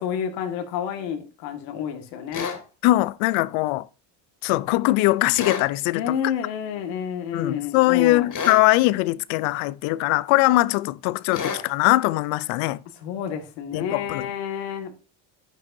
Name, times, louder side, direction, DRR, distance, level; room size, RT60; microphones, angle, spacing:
voice 1, 0.0-2.5 5.9-8.3 13.0-15.0, left 8 dB, 90° left, 1.9 m, -29 dB
sound 1, 2.3-2.6 5.3-5.7 8.3-8.6 11.3-11.6, left 6 dB, 40° left, 2.7 m, -29 dB
voice 2, 2.8-3.9 4.4-6.0 7.3-12.8 13.7-14.3, left 19 dB, 70° left, 0.7 m, -21 dB
10.0 x 10.0 x 2.7 m
supercardioid pair, 90°, 49 cm